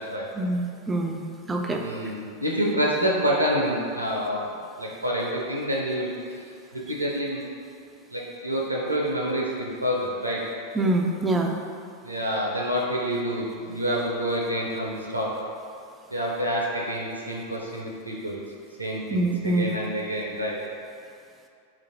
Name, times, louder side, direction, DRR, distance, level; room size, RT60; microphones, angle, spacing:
voice 1, 0.4-1.8 10.8-11.5 19.1-19.7, right 2 dB, 15° right, 2 dB, 0.3 m, -25 dB
voice 2, 1.8-6.1 6.7-7.4 8.1-10.4 12.0-15.4 16.1-18.4 18.8-20.6, equal, 85° right, -3 dB, 0.5 m, -27 dB
2.9 x 2.5 x 4.1 m, 2.4 s
figure-of-eight pair, 90°, 0 cm